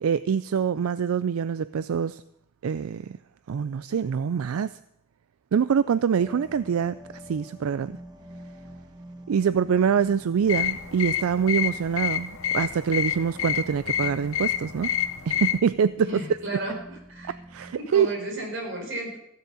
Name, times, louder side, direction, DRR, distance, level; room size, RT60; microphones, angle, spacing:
voice 1, 0.0-2.2 2.6-3.2 3.5-4.8 5.5-8.0 9.3-14.9 15.3-16.2 17.3-18.1, right 7 dB, 85° right, 0.4 m, -25 dB
sound 1, 6.1-17.7, equal, 20° right, 1.1 m, -46 dB
sound 2, 10.5-15.6, left 10 dB, 80° left, 0.8 m, -28 dB
voice 2, 16.0-19.2, right 1 dB, 60° right, 4.4 m, -34 dB
15.5 x 7.5 x 6.9 m
head